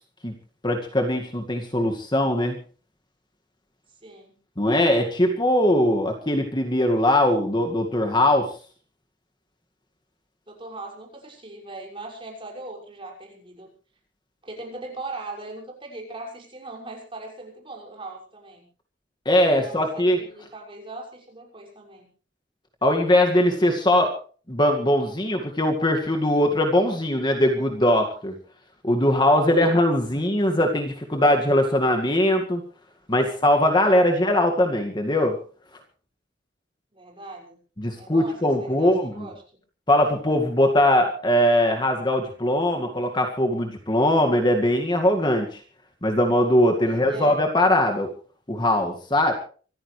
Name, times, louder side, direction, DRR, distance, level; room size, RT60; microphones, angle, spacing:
voice 1, 0.6-2.6 4.6-8.5 19.3-20.2 22.8-24.1 24.5-28.3 28.8-32.6 33.1-35.3 37.8-39.3 39.9-45.6 46.0-48.1 48.5-49.3, left 1 dB, 25° left, 3 dB, 2.1 m, -21 dB
voice 2, 4.0-4.3 10.5-13.7 14.4-18.6 19.4-22.1 29.6-29.9 36.9-37.6 37.9-39.3 46.8-47.4, right 2 dB, 30° right, 0 dB, 6.4 m, -39 dB
25.5 x 14.5 x 3.3 m, 0.39 s
head